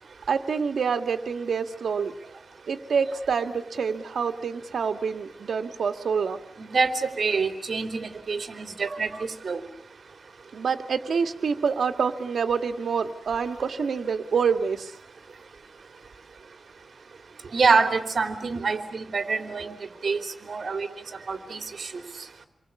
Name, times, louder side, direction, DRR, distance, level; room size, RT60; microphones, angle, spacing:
voice 1, 0.3-2.1 2.7-6.4 10.5-14.9, right 6 dB, 75° right, 7 dB, 2.2 m, -27 dB
voice 2, 6.6-9.6 17.5-19.8 20.0-20.9 21.3-21.9, right 4 dB, 55° right, 7 dB, 3.5 m, -26 dB
29.0 x 23.5 x 8.6 m, 0.70 s
wide cardioid pair, 120°, 0 cm